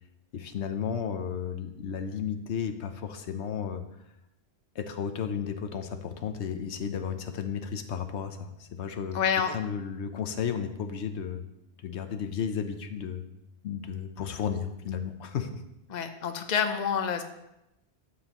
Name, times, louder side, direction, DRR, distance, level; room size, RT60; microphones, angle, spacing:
voice 1, 0.3-3.8 4.7-9.2 9.5-11.4 11.8-13.3 13.6-15.6, left 7 dB, 80° left, 8 dB, 1.0 m, -33 dB
voice 2, 9.1-9.6 15.9-17.2, left 7 dB, 45° left, 6 dB, 0.8 m, -27 dB
11.5 x 7.4 x 3.0 m, 0.89 s
omnidirectional pair, 1.1 m